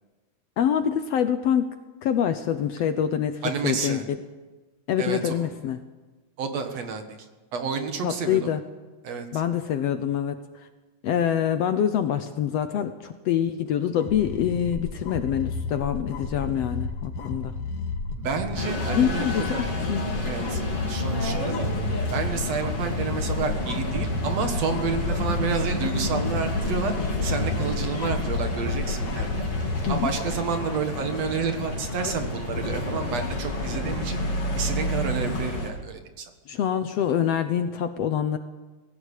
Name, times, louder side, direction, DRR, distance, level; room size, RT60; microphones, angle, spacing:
voice 1, 0.6-1.7 2.0-4.0 4.9-5.8 8.0-8.6 9.3-10.4 11.0-17.6 19.0-20.1 29.9-30.1 36.5-38.4, left 9 dB, 70° left, 9 dB, 1.7 m, -25 dB
voice 2, 3.4-4.0 5.0-5.5 6.4-7.2 7.5-8.6 9.0-9.3 18.2-19.6 20.2-20.6 20.9-21.7 22.1-26.9 27.2-29.4 29.9-34.2 34.5-36.3, right 5 dB, 60° right, 6 dB, 2.7 m, -30 dB
sound 1, 14.0-30.4, left 3 dB, 85° left, 3.5 m, -32 dB
sound 2, 18.5-35.7, left 1 dB, 45° left, 4.3 m, -29 dB
20.5 x 16.5 x 8.5 m, 1.2 s
omnidirectional pair, 3.5 m